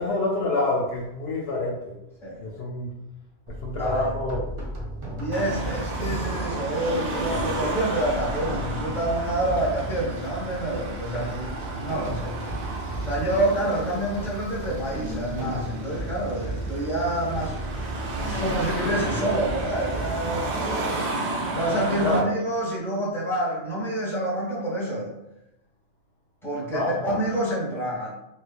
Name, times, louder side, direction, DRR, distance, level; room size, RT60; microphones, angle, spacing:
voice 1, 0.0-2.0 2.4-2.9 3.6-4.5 22.0-22.3 26.7-27.1, left 2 dB, 65° left, -3 dB, 0.7 m, -27 dB
sound 1, 3.5-20.7, right 1 dB, 30° right, 0.7 m, -35 dB
voice 2, 3.7-4.1 5.2-12.4 13.0-17.6 18.2-20.7 21.5-25.1 26.4-28.1, right 1 dB, ahead, -6 dB, 1.0 m, -28 dB
Car passing by / Traffic noise roadway noise / Engine, 5.3-22.2, right 2 dB, 65° right, 1.0 m, -32 dB
3.4 x 3.0 x 2.4 m, 0.88 s
omnidirectional pair, 1.3 m